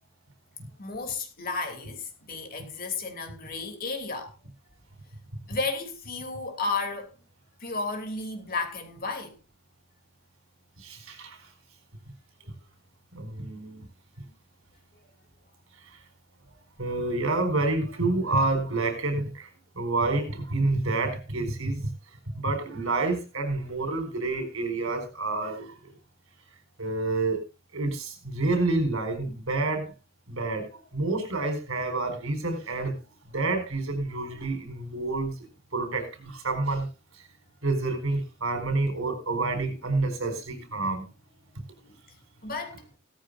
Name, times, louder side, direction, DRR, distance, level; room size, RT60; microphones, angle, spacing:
voice 1, 0.8-4.3 5.5-7.1 7.6-9.3 12.4-12.5 41.9-42.0 42.4-42.8, left 3 dB, 45° left, 3.1 m, -33 dB
voice 2, 10.8-11.5 13.1-13.8 15.8-16.0 16.8-19.5 19.7-21.9 22.3-25.9 26.8-27.4 27.7-29.9 30.3-33.0 33.3-35.4 35.7-36.9 37.1-37.2 37.6-41.0, right 2 dB, 90° right, 4.6 m, -28 dB
17.0 x 14.0 x 2.6 m
head